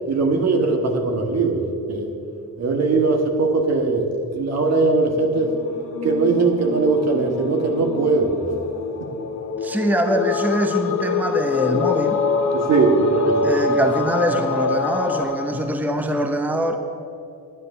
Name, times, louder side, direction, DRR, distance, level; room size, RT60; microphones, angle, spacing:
voice 1, 0.1-2.1 2.6-4.1 4.3-5.5 6.0-8.3 9.0-9.1 12.7-13.6, right 3 dB, 60° right, 4 dB, 1.8 m, -20 dB
sound 1, 4.9-15.2, left 2 dB, 50° left, 2.0 m, -28 dB
voice 2, 9.6-12.2 13.4-16.8, equal, 5° right, 6 dB, 0.9 m, -23 dB
sound 2, 9.9-15.7, left 8 dB, 70° left, 1.0 m, -26 dB
9.8 x 9.7 x 6.8 m, 2.7 s
cardioid pair, 90°, 30 cm